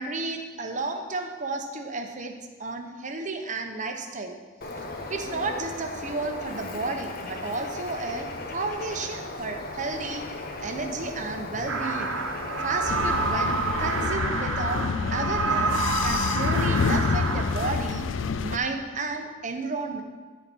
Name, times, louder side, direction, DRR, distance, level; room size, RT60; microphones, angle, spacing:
voice 1, 0.0-2.3 2.6-4.4 5.1-8.3 8.5-10.2 10.6-12.1 12.6-18.1 18.4-20.0, right 3 dB, 40° right, 4 dB, 0.9 m, -32 dB
Bird, 4.6-14.1, left 2 dB, 50° left, 0.9 m, -37 dB
sound 1, 11.7-17.7, right 3 dB, 90° right, 1.0 m, -28 dB
sound 2, 12.9-18.6, left 5 dB, 75° left, 0.4 m, -28 dB
12.5 x 4.2 x 6.1 m, 1.4 s
head